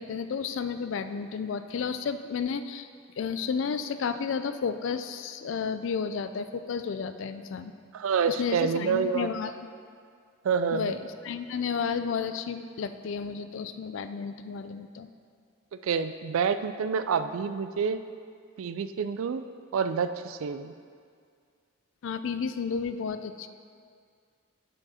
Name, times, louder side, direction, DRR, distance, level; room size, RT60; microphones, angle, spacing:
voice 1, 0.0-2.9 3.2-7.7 8.3-9.5 10.7-11.0 11.2-15.1 22.0-23.5, left 6 dB, 70° left, 10 dB, 0.3 m, -32 dB
voice 2, 7.9-9.6 10.4-11.0 15.8-18.0 18.6-19.4 19.7-20.7, right 6 dB, 80° right, 11 dB, 0.4 m, -28 dB
8.4 x 5.3 x 4.2 m, 2.2 s
head